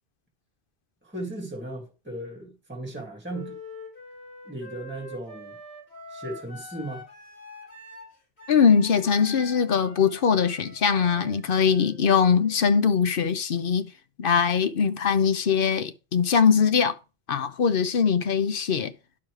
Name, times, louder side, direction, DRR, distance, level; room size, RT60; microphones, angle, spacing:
voice 1, 1.0-3.6 4.4-5.6 6.1-7.0, right 1 dB, 10° right, 2.2 m, -36 dB
Wind instrument woodwind instrument, 3.3-13.1, left 1 dB, 85° left, 3.3 m, -45 dB
voice 2, 8.5-13.9 14.2-16.9 17.3-18.9, left 6 dB, 60° left, 0.9 m, -22 dB
10.5 x 6.0 x 3.2 m
omnidirectional pair, 1.1 m